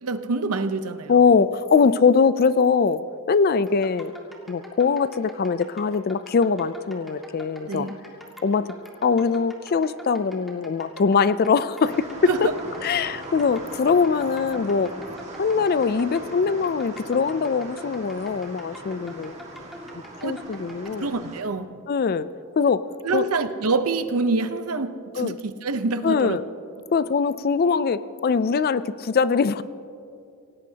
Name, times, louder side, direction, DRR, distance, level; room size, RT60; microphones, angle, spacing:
voice 1, 0.0-1.1 7.6-8.0 12.3-12.5 20.2-20.3 20.9-21.7 23.0-26.4, right 3 dB, 80° right, 10 dB, 0.8 m, -26 dB
voice 2, 1.1-3.0 3.3-4.1 4.5-7.9 8.4-8.7 9.0-12.5 12.8-14.9 15.4-19.4 20.2-21.1 21.9-22.3 22.6-22.8 23.1-23.3 25.2-25.4 26.0-26.4 26.9-29.6, left 5 dB, 45° left, 15 dB, 0.4 m, -22 dB
sound 1, 3.7-21.0, equal, ahead, 2.2 m, -45 dB
sound 2, 11.8-21.4, right 2 dB, 30° right, 1.9 m, -40 dB
26.0 x 17.5 x 2.9 m, 2.5 s
head